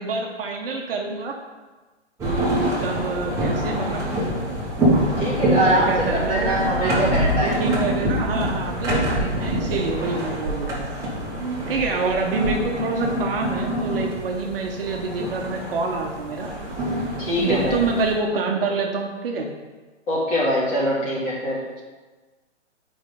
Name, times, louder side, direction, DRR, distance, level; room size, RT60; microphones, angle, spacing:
voice 1, 0.0-1.3 2.2-4.0 5.6-11.0 11.4-16.5 17.4-19.5, right 3 dB, 50° right, 1 dB, 0.9 m, -27 dB
sound 1, 2.2-18.1, right 1 dB, 10° right, 1.4 m, -25 dB
voice 2, 5.2-7.6 17.2-17.8 20.1-21.6, equal, 20° left, -7 dB, 2.3 m, -23 dB
7.1 x 5.1 x 3.7 m, 1.3 s
hypercardioid pair, 145°, 36 cm